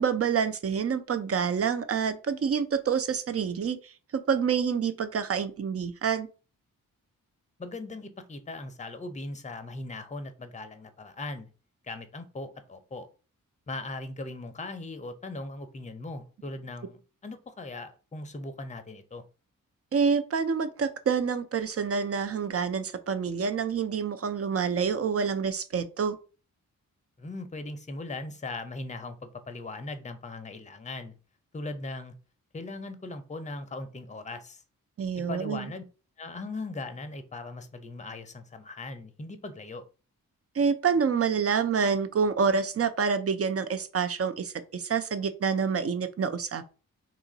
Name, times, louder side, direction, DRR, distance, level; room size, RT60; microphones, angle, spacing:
voice 1, 0.0-6.3 19.9-26.2 35.0-35.7 40.6-46.6, right 6 dB, 40° right, 0.5 m, -27 dB
voice 2, 7.6-11.5 11.8-13.1 13.7-19.2 27.2-31.1 31.5-32.1 32.5-34.6 35.3-35.8 36.2-39.8, left 2 dB, 20° left, 0.6 m, -39 dB
2.9 x 2.5 x 3.9 m
supercardioid pair, 45°, 36 cm